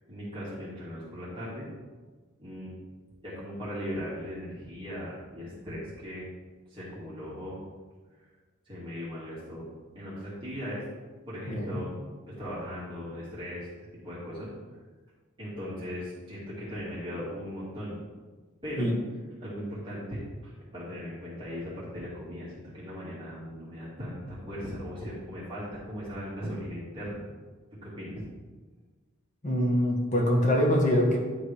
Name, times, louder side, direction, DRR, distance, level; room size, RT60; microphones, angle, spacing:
voice 1, 0.1-1.7 2.4-2.7 3.2-6.3 6.7-7.6 8.7-9.6 9.9-10.8 11.3-11.9 12.3-13.7 14.0-14.5 15.4-18.0 18.6-18.9 19.4-27.3 27.8-28.2, equal, 25° right, -9 dB, 2.7 m, -38 dB
voice 2, 11.5-11.8 18.8-18.9 29.4-31.2, equal, 35° left, 0 dB, 1.5 m, -24 dB
11.0 x 3.8 x 4.9 m, 1.4 s
head